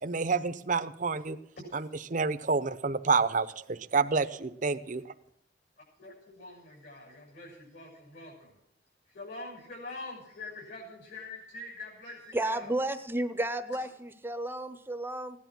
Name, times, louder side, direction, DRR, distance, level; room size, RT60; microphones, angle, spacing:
voice 1, 0.0-1.4 1.7-5.0, right 4 dB, 45° right, 11 dB, 0.7 m, -29 dB
voice 2, 6.0-8.6 9.1-12.7, left 2 dB, 65° left, -2 dB, 6.8 m, -44 dB
voice 3, 12.3-15.4, right 1 dB, 10° right, 11 dB, 0.8 m, -32 dB
16.5 x 10.5 x 6.1 m, 0.75 s
head